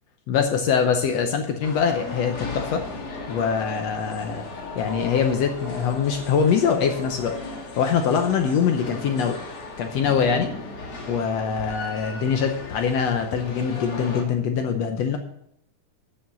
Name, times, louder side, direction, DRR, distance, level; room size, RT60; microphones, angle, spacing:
voice 1, 0.3-2.9 3.3-4.4 4.8-7.4 7.8-9.4 9.8-10.5 11.1-15.2, left 6 dB, 65° left, 5 dB, 1.8 m, -23 dB
sound 1, 1.6-14.2, left 3 dB, 45° left, 2.6 m, -36 dB
9.1 x 7.3 x 6.9 m, 0.73 s
omnidirectional pair, 3.6 m